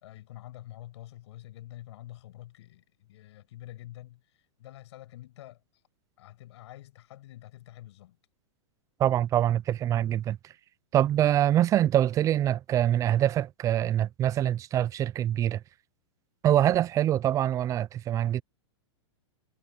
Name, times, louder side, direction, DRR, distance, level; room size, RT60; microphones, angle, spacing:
voice 1, 0.0-5.6 6.2-8.2, left 14 dB, 65° left, 5.9 m, -47 dB
voice 2, 9.0-10.4 10.9-15.6 16.4-18.4, right 11 dB, 20° right, 0.5 m, -24 dB
hypercardioid pair, 140°, 16 cm